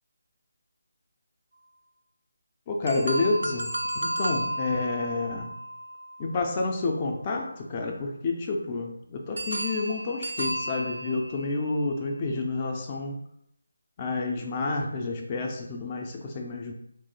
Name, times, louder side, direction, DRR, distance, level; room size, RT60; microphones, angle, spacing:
voice 1, 2.7-5.6 6.2-13.2 14.0-16.7, left 3 dB, 25° left, 1 dB, 0.4 m, -29 dB
sound 1, 2.9-6.9 9.4-11.7, right 1 dB, 75° right, 0.3 m, -33 dB
2.8 x 2.0 x 4.0 m, 0.74 s
figure-of-eight pair, 160°, 0 cm